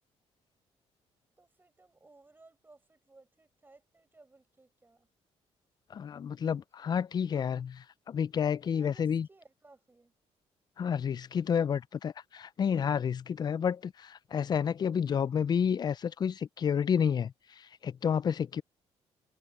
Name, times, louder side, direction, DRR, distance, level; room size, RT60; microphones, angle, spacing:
voice 1, 1.4-5.1 6.8-6.9 8.5-10.1, right 3 dB, 15° right, 5.2 m, -60 dB
voice 2, 5.9-9.3 10.8-18.6, left 7 dB, 35° left, 0.4 m, -30 dB
cardioid pair, 105°, 12 cm